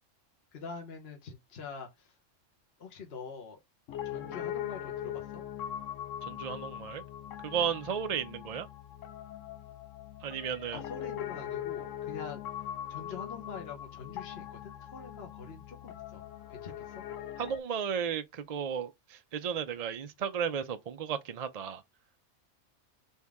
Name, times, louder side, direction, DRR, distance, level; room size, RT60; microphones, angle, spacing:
voice 1, 0.5-2.1 2.8-3.6 4.0-5.4 10.7-17.0, left 5 dB, 55° left, 1.3 m, -45 dB
Piano, 3.9-17.6, left 11 dB, 80° left, 1.1 m, -41 dB
voice 2, 6.2-7.0 7.4-8.7 10.2-10.8 17.4-21.8, right 7 dB, 50° right, 0.5 m, -34 dB
4.2 x 3.6 x 3.5 m
omnidirectional pair, 1.3 m